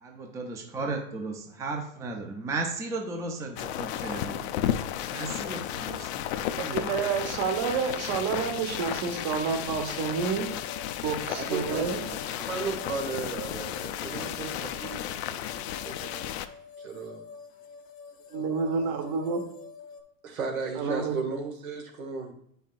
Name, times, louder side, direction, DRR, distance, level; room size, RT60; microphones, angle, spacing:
voice 1, 0.0-4.5 5.1-6.9, right 3 dB, 10° right, 3 dB, 0.5 m, -35 dB
sound 1, 3.6-16.5, left 11 dB, 55° left, 0.5 m, -33 dB
voice 2, 6.6-10.5 11.0-12.0 18.3-19.4 20.7-21.1, right 6 dB, 45° right, 6 dB, 1.1 m, -29 dB
sound 2, 9.9-20.0, left 5 dB, 20° left, 0.8 m, -47 dB
voice 3, 11.3-16.4 16.8-17.2 20.2-22.3, right 4 dB, 85° right, 2 dB, 1.6 m, -35 dB
8.4 x 5.5 x 2.4 m, 0.70 s
hypercardioid pair, 125°, 41 cm